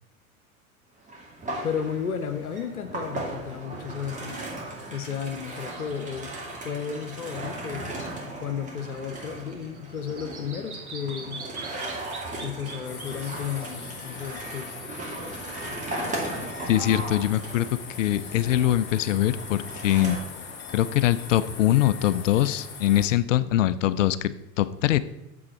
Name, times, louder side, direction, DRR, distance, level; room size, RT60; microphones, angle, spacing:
sound 1, 1.1-20.2, right 2 dB, 15° right, 2.4 m, -37 dB
voice 1, 1.6-4.4 4.9-6.3 6.6-8.1 8.4-11.5 12.4-14.7, left 7 dB, 85° left, 7 dB, 0.9 m, -33 dB
Bird vocalization bird call bird song, 8.9-14.8, right 4 dB, 85° right, 1.3 m, -43 dB
sound 2, 12.8-23.1, left 5 dB, 25° left, 1.3 m, -41 dB
voice 2, 16.7-17.7 18.0-20.2 20.7-25.0, left 13 dB, 60° left, 16 dB, 0.6 m, -23 dB
8.6 x 7.2 x 4.3 m, 0.88 s
figure-of-eight pair, 90°, 42 cm